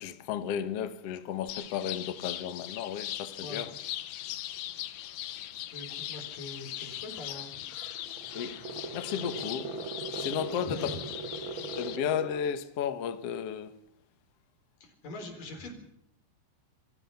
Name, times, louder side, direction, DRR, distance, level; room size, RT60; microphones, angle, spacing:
voice 1, 0.0-3.7 8.3-8.6 8.9-9.7 10.2-10.9 11.8-13.7, left 8 dB, 90° left, 1.3 m, -33 dB
sound 1, 1.5-12.0, left 13 dB, 70° left, 2.1 m, -40 dB
voice 2, 5.7-7.6 10.6-11.0 14.8-15.7, left 2 dB, 50° left, 5.6 m, -42 dB
sound 2, 7.6-12.5, right 4 dB, 45° right, 1.6 m, -40 dB
28.5 x 23.0 x 5.8 m
omnidirectional pair, 5.1 m